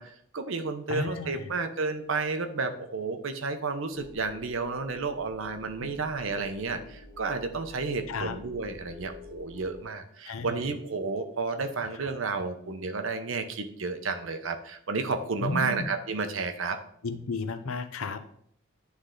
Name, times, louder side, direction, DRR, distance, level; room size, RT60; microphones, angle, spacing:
voice 1, 0.0-16.8, right 4 dB, 70° right, 7 dB, 0.7 m, -32 dB
voice 2, 0.9-1.5 5.8-5.9 8.1-8.4 10.3-10.6 15.4-15.9 17.0-18.3, left 3 dB, 80° left, 9 dB, 0.6 m, -33 dB
sound 1, 3.9-9.8, left 2 dB, 5° right, 1.4 m, -49 dB
9.9 x 3.3 x 3.7 m, 0.67 s
head